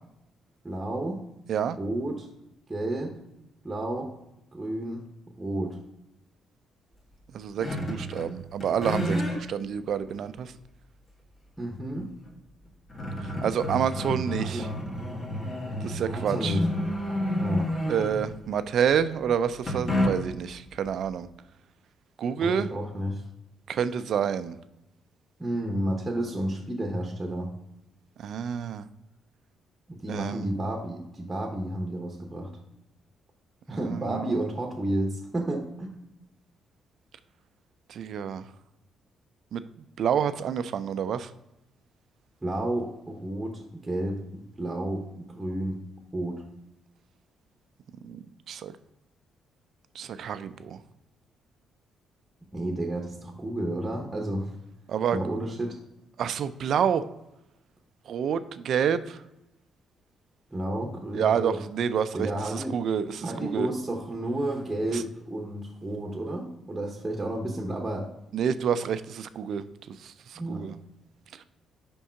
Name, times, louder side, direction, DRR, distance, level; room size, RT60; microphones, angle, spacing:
voice 1, 0.6-1.2 1.8-2.3 2.7-3.2 3.6-4.1 4.5-5.0 5.4-5.8 11.6-12.1 14.4-14.7 16.0-16.7 17.4-17.7 22.4-23.2 25.4-27.5 29.9-32.5 33.7-35.9 42.4-45.8 46.1-46.4 52.5-54.5 55.1-55.8 60.5-61.6 62.1-62.8 63.2-68.1 70.4-70.7, right 1 dB, 15° right, 0 dB, 0.9 m, -31 dB
voice 2, 7.3-10.5 13.2-14.7 15.8-16.6 17.9-21.3 22.2-22.7 23.7-24.6 28.2-28.9 30.1-30.5 33.7-34.4 37.9-38.5 39.5-39.6 40.0-41.3 48.0-48.2 48.5-48.7 49.9-50.8 54.9-55.2 56.2-57.0 58.1-59.2 61.1-63.7 64.9-65.0 68.3-70.8 71.3-71.4, right 8 dB, 65° right, 13 dB, 0.4 m, -28 dB
sound 1, 7.6-8.3 8.6-9.4 10.1-10.2 12.2-12.3 12.7-18.4 19.7-20.5, left 1 dB, 35° left, 1.8 m, -30 dB
5.3 x 3.6 x 5.6 m, 0.88 s
cardioid pair, 90°, 0 cm